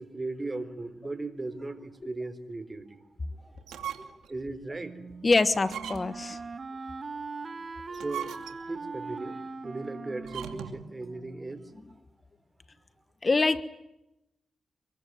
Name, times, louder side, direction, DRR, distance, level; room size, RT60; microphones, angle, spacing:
voice 1, 0.0-3.0 3.9-5.0 7.4-7.5 7.9-12.0, right 2 dB, 30° right, 12 dB, 3.9 m, -38 dB
sound 1, 3.6-4.3 4.8-4.9 5.6-6.3 7.8-8.8 10.2-10.9, right 9 dB, 90° right, 2.4 m, -39 dB
Wind instrument woodwind instrument, 4.8-11.6, right 4 dB, 45° right, 1.9 m, -41 dB
voice 2, 5.2-6.4 13.2-13.6, left 3 dB, 40° left, 12 dB, 1.3 m, -24 dB
25.0 x 22.0 x 9.4 m, 0.90 s
cardioid pair, 55°, 0 cm